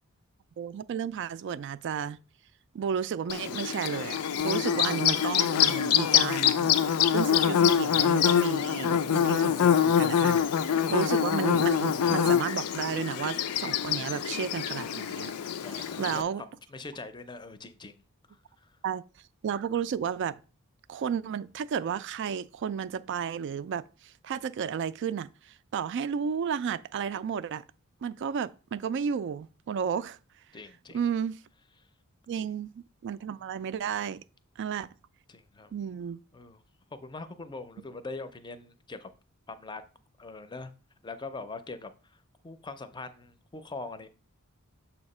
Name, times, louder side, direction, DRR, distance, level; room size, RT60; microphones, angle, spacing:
voice 1, 0.6-2.2 2.7-6.7 7.1-15.3 15.7-16.4 18.8-19.0 19.4-20.4 20.9-27.6 28.0-30.2 30.9-31.4 32.3-34.2 34.6-34.9 35.7-36.2, right 7 dB, 55° right, 0.3 m, -32 dB
Bird / Buzz, 3.3-16.2, left 8 dB, 90° left, 0.4 m, -25 dB
voice 2, 5.7-6.2 15.6-18.0 18.3-18.7 30.5-31.0 32.3-32.5 35.3-35.7 36.3-36.6 36.9-39.1 39.5-39.8 40.2-40.7 41.0-44.1, left 3 dB, 20° left, 0.5 m, -43 dB
7.0 x 2.8 x 5.4 m
head